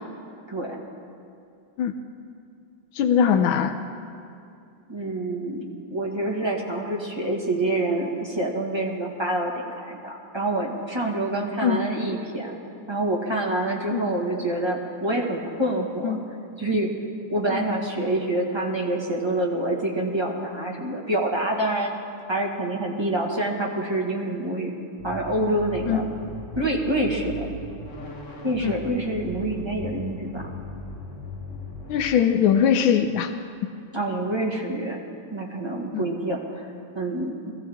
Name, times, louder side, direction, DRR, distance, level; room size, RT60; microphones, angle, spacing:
voice 1, 0.5-0.8 4.9-12.6 12.9-16.1 16.6-16.9 17.3-21.9 22.3-24.7 25.0-26.0 26.5-27.5 28.4-30.4 33.9-35.0 35.3-36.7 36.9-37.3, right 1 dB, 15° right, -3 dB, 1.4 m, -26 dB
voice 2, 2.9-3.8 11.6-11.8 13.9-14.1 16.0-16.2 17.5-17.6 25.9-26.0 28.6-28.7 31.9-33.3 35.9-36.0, left 8 dB, 80° left, 5 dB, 1.4 m, -21 dB
sound 1, 25.0-32.1, left 1 dB, 45° left, 1.4 m, -38 dB
21.5 x 15.0 x 3.6 m, 2.5 s
omnidirectional pair, 2.2 m